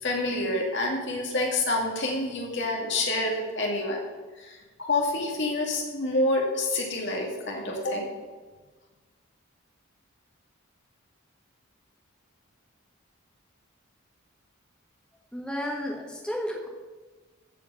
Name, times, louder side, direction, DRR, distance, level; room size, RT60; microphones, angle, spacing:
voice 1, 0.0-4.0 4.4-8.1, left 2 dB, 55° left, 0 dB, 2.3 m, -28 dB
voice 2, 15.3-16.7, equal, 5° left, 0 dB, 1.5 m, -32 dB
14.5 x 4.9 x 5.6 m, 1.3 s
head